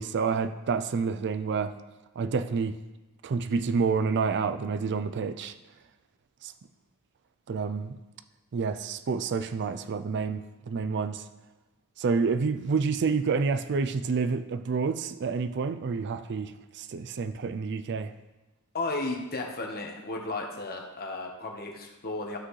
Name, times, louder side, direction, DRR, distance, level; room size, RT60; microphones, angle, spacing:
voice 1, 0.0-1.8 2.2-2.8 3.2-5.6 6.4-6.5 7.5-8.0 8.5-11.2 12.0-18.1, right 5 dB, 55° right, 0.4 m, -28 dB
voice 2, 18.7-22.4, left 2 dB, 45° left, 1.2 m, -34 dB
12.0 x 6.0 x 3.2 m
head